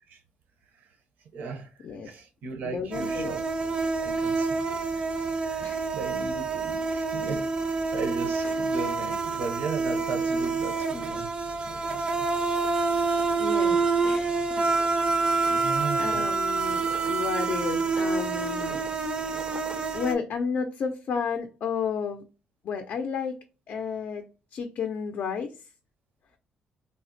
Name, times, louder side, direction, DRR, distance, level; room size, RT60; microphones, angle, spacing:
voice 1, 1.3-3.4 4.0-4.6 4.9-5.0 5.3-11.3 11.6-12.3 15.5-16.3, right 4 dB, 75° right, 0.8 m, -37 dB
voice 2, 2.6-3.3 5.6-5.9 13.4-14.7 15.3-18.8 19.3-19.6 19.9-22.2 22.6-23.3 23.7-24.2 24.5-25.7, left 6 dB, 60° left, 0.4 m, -32 dB
sound 1, 2.9-20.1, right 4 dB, 30° right, 0.4 m, -27 dB
3.4 x 2.0 x 2.5 m
cardioid pair, 125°, 3 cm